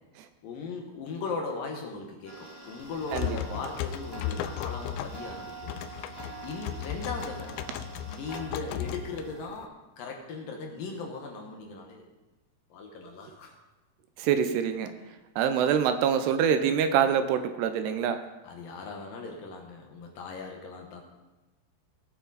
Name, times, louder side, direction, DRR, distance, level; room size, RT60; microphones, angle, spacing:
voice 1, 0.4-6.1 6.4-7.8 8.1-12.1 12.7-13.5 18.4-21.0, left 4 dB, 65° left, 1 dB, 2.5 m, -38 dB
Tick-tock, 2.2-9.5, right 3 dB, 15° right, 0.9 m, -45 dB
sound 1, 2.8-9.6, left 10 dB, 90° left, 2.8 m, -36 dB
voice 2, 14.2-15.0 15.4-18.2, right 8 dB, 80° right, 9 dB, 2.6 m, -25 dB
19.5 x 6.8 x 4.0 m, 1.1 s
omnidirectional pair, 4.9 m